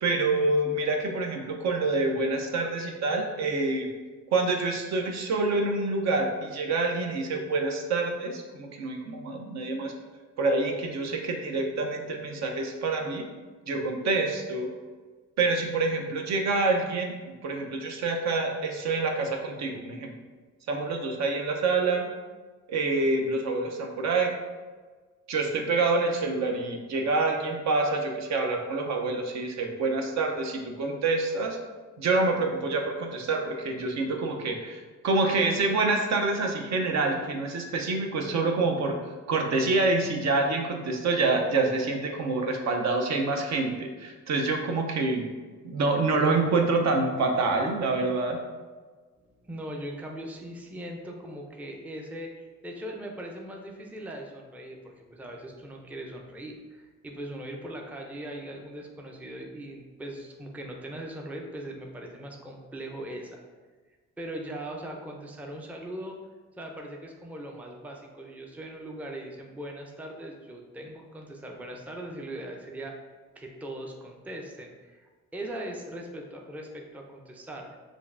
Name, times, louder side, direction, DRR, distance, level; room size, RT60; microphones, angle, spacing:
voice 1, 0.0-3.9 4.3-9.9 10.4-13.3 13.7-14.7 15.4-17.2 17.4-20.1 20.7-22.1 22.7-24.3 25.3-31.6 32.0-39.0 39.3-45.2 45.6-48.4, right 3 dB, 65° right, 3 dB, 0.6 m, -27 dB
voice 2, 49.4-63.4 64.2-66.2 66.6-72.9 73.4-77.8, right 1 dB, 5° right, 1 dB, 0.4 m, -40 dB
5.0 x 2.6 x 2.5 m, 1.4 s
cardioid pair, 90°, 30 cm